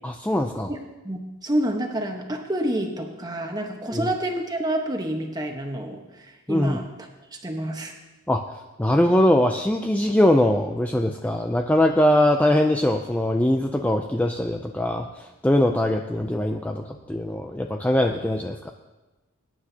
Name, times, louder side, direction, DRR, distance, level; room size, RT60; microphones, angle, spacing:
voice 1, 0.0-0.7 3.9-4.1 6.5-6.8 8.3-8.4 8.8-18.7, left 1 dB, 5° left, 4 dB, 0.4 m, -22 dB
voice 2, 0.7-6.9 7.3-7.9, right 1 dB, 20° right, 3 dB, 1.1 m, -28 dB
20.5 x 9.8 x 2.8 m, 1.1 s
head